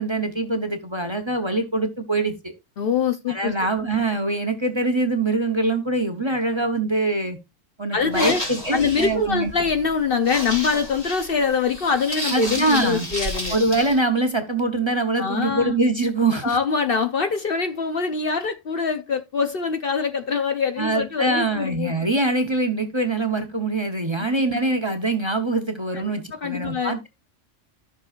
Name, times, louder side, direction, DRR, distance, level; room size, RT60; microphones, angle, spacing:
voice 1, 0.0-2.5 3.3-7.4 7.8-9.5 12.3-13.1 13.5-16.6 20.8-27.1, right 2 dB, 25° right, 0.9 m, -23 dB
voice 2, 2.8-3.5 7.9-8.4 8.7-13.6 15.2-15.8 16.4-21.9 25.9-27.0, left 5 dB, 55° left, 0.8 m, -24 dB
sound 1, 8.0-14.0, equal, 30° left, 3.0 m, -32 dB
13.5 x 6.2 x 2.4 m
omnidirectional pair, 1.3 m